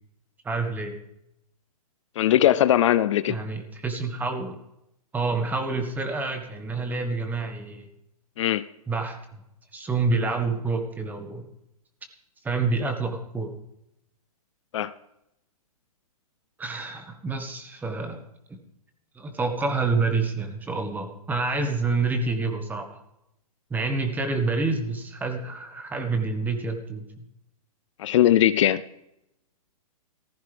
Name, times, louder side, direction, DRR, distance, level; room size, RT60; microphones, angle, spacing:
voice 1, 0.4-1.0 3.3-4.5 5.1-7.9 8.9-9.2 9.7-11.5 12.4-13.5 16.6-18.2 18.5-18.6 19.1-23.0 23.7-27.2, right 3 dB, 10° right, 5 dB, 1.5 m, -28 dB
voice 2, 2.2-3.4 8.4-8.6 14.7-14.9 28.0-28.8, left 12 dB, 55° left, 16 dB, 0.6 m, -20 dB
17.0 x 15.0 x 3.5 m, 0.85 s
hypercardioid pair, 145°, 19 cm